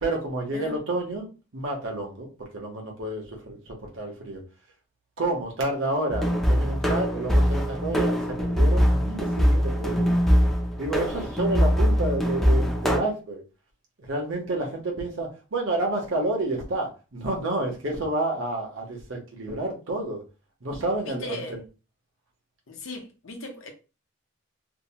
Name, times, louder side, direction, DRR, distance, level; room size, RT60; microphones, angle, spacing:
voice 1, 0.0-2.3 2.5-4.4 5.2-10.2 10.8-13.4 14.0-20.2 20.6-21.4, right 2 dB, 65° right, 0.9 m, -29 dB
sound 1, 6.1-13.0, equal, ahead, 0.3 m, -22 dB
voice 2, 21.0-21.6 22.7-23.7, left 1 dB, 75° left, 0.8 m, -37 dB
2.8 x 2.1 x 2.8 m
head